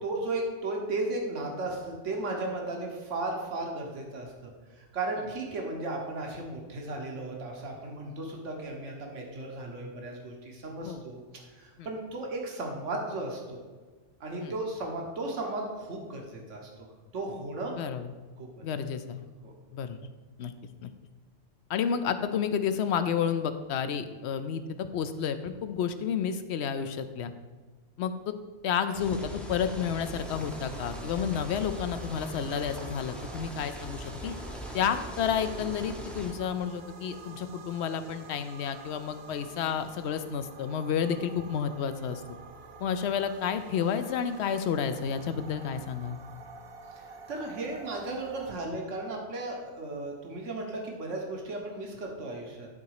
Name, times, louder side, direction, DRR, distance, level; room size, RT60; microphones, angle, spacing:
voice 1, 0.0-11.2 11.5-13.6 14.2-16.9 17.1-17.8 18.4-18.5 19.4-19.5 46.9-52.7, right 2 dB, 75° right, 0 dB, 1.6 m, -35 dB
voice 2, 17.8-18.1 18.6-19.3 19.7-20.0 20.4-20.5 20.8-20.9 21.7-27.3 28.0-28.3 28.6-34.4 34.7-42.2 42.8-46.2, left 7 dB, 65° left, 10 dB, 0.8 m, -31 dB
sound 1, 28.9-36.3, equal, ahead, 0.6 m, -41 dB
sound 2, 29.6-48.5, right 4 dB, 60° right, 0.9 m, -49 dB
11.0 x 4.0 x 4.8 m, 1.4 s
omnidirectional pair, 1.3 m